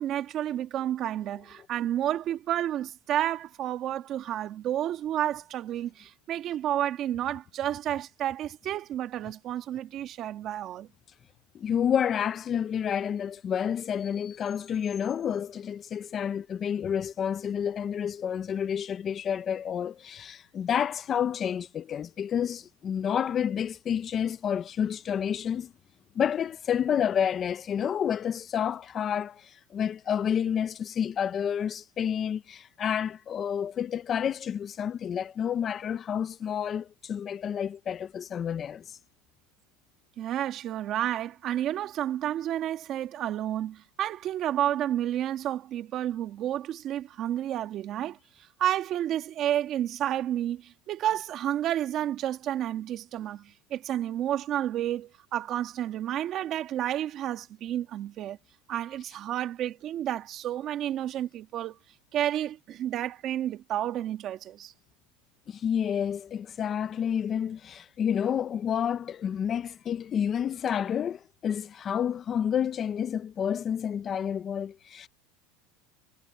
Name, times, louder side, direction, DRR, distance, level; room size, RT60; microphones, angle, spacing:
voice 1, 0.0-10.9 40.2-48.2 48.6-58.4 58.7-61.8 62.1-64.7, right 11 dB, 35° right, 2.0 m, -30 dB
voice 2, 11.5-25.7 26.1-39.0 65.5-75.1, left 8 dB, 25° left, 0.6 m, -29 dB
supercardioid pair, 150°, 0 cm